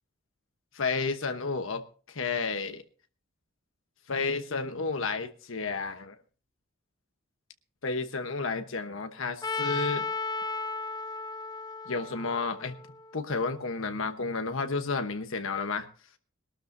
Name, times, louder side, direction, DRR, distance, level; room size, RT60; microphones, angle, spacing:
voice 1, 0.7-2.8 4.1-6.2 7.8-10.1 11.9-12.8 13.1-15.9, left 4 dB, 70° left, 8 dB, 1.1 m, -31 dB
Trumpet, 9.4-13.5, left 4 dB, 20° left, 0.7 m, -35 dB
21.5 x 12.5 x 2.7 m, 0.38 s
head